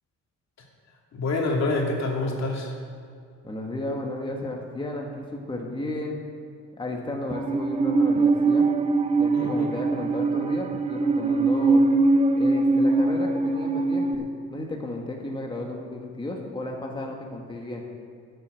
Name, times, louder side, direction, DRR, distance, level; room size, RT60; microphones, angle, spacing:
voice 1, 1.1-2.7 9.3-9.7, left 2 dB, 60° left, -1 dB, 2.8 m, -27 dB
voice 2, 3.4-6.2 6.8-8.7 9.1-11.8 12.4-17.8, left 1 dB, 15° left, 0 dB, 1.6 m, -33 dB
Musical instrument, 7.3-14.2, right 3 dB, 20° right, 0.8 m, -22 dB
13.5 x 8.1 x 6.4 m, 2.3 s
cardioid pair, 90°, 30 cm